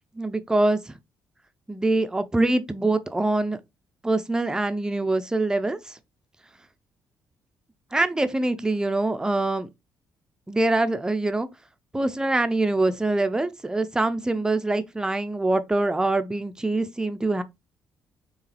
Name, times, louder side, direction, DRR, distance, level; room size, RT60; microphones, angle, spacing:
voice 1, 0.2-0.9 1.7-3.6 4.0-6.0 7.9-9.7 10.5-11.5 11.9-17.4, right 2 dB, 10° right, 0.5 m, -24 dB
4.7 x 3.2 x 3.3 m
cardioid pair, 130°, 7 cm